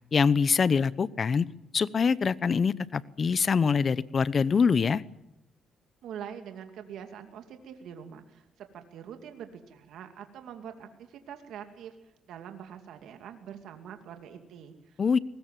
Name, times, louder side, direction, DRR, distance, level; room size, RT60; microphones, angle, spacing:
voice 1, 0.1-1.4 1.7-5.0 15.0-15.2, left 5 dB, 45° left, 19 dB, 0.8 m, -24 dB
voice 2, 6.0-12.0 12.3-15.2, right 8 dB, 80° right, 6 dB, 2.6 m, -44 dB
23.5 x 20.5 x 7.5 m, 0.85 s
cardioid pair, 90°, 0 cm